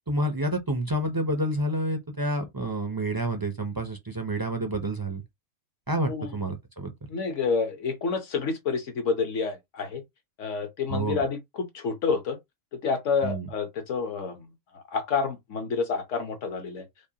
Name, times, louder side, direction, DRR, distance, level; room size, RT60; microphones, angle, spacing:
voice 1, 0.1-5.2 5.9-7.1 10.9-11.2 13.2-13.5, right 1 dB, 25° right, 0.5 m, -29 dB
voice 2, 7.1-10.0 10.4-12.4 12.7-14.5 14.7-16.8, left 5 dB, 65° left, 1.3 m, -29 dB
5.2 x 2.2 x 2.8 m
omnidirectional pair, 1.4 m